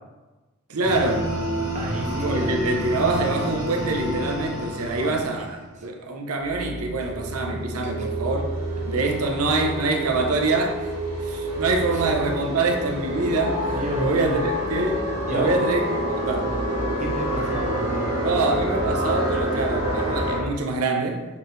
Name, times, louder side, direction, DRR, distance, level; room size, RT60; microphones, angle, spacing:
voice 1, 0.7-1.3 2.2-8.5 8.8-10.9 11.2-15.0 15.3-16.0 16.2-16.5 18.2-21.2, right 3 dB, 80° right, 3 dB, 0.7 m, -25 dB
sound 1, 0.8-5.6 6.4-20.4, right 1 dB, 65° right, 1.7 m, -28 dB
voice 2, 1.7-2.8 4.8-5.4 7.0-7.1 7.8-7.9 11.9-12.0 13.7-14.5 15.3-15.5 17.0-18.1, equal, 30° right, -1 dB, 0.9 m, -31 dB
7.0 x 4.5 x 3.2 m, 1.2 s
head